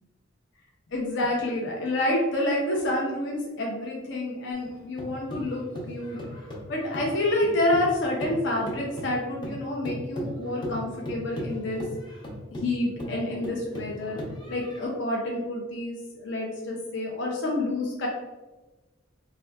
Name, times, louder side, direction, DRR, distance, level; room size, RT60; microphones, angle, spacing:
voice 1, 0.9-5.6 5.9-6.2 6.7-11.8 12.6-14.2 14.5-18.1, left 1 dB, 70° left, -1 dB, 0.5 m, -28 dB
sound 1, 4.5-7.9 8.2-14.9, equal, 25° left, 0.6 m, -37 dB
3.6 x 2.2 x 2.2 m, 1.1 s
head